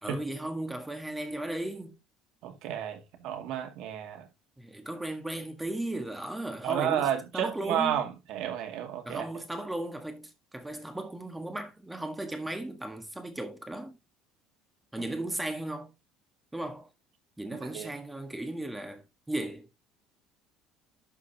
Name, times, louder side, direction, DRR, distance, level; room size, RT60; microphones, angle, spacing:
voice 1, 0.0-2.0 4.6-7.1 7.3-8.1 9.0-14.0 14.9-15.9 16.5-16.9 17.4-19.7, right 1 dB, 5° right, 1.5 m, -36 dB
voice 2, 2.4-4.3 6.6-9.2 17.5-17.9, right 10 dB, 70° right, 2.3 m, -32 dB
11.5 x 5.5 x 2.8 m
cardioid pair, 145°, 0 cm